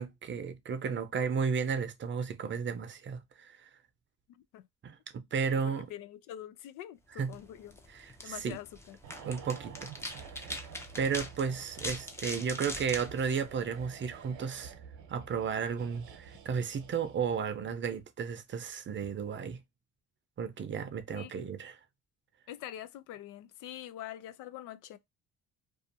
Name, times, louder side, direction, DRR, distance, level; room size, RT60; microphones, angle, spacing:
voice 1, 0.0-3.7 4.8-5.9 7.2-7.3 7.9-8.6 9.2-9.9 10.4-10.5 11.0-14.7 15.1-19.6 20.4-21.8, right 6 dB, 40° right, 0.6 m, -34 dB
voice 2, 5.5-7.8 8.2-9.0 21.1-21.4 22.5-25.0, left 12 dB, 80° left, 0.5 m, -45 dB
sound 1, 7.2-14.2, left 1 dB, 10° left, 0.5 m, -43 dB
sound 2, 9.0-17.6 17.8-18.0, right 7 dB, 70° right, 0.8 m, -50 dB
2.6 x 2.3 x 2.5 m
cardioid pair, 100°, 31 cm